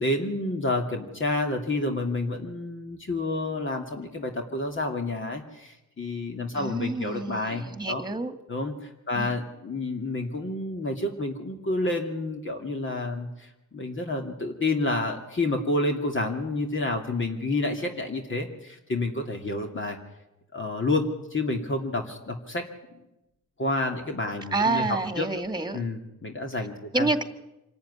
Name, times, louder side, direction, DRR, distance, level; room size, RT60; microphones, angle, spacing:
voice 1, 0.0-8.0 8.5-20.0 20.5-22.7 23.6-25.3 25.7-27.1, left 2 dB, 40° left, 3 dB, 2.5 m, -29 dB
voice 2, 6.5-8.3 9.2-9.4 24.5-25.8 26.9-27.2, right 3 dB, 15° right, 9 dB, 2.1 m, -28 dB
25.5 x 14.0 x 9.9 m, 0.94 s
cardioid pair, 95°, 31 cm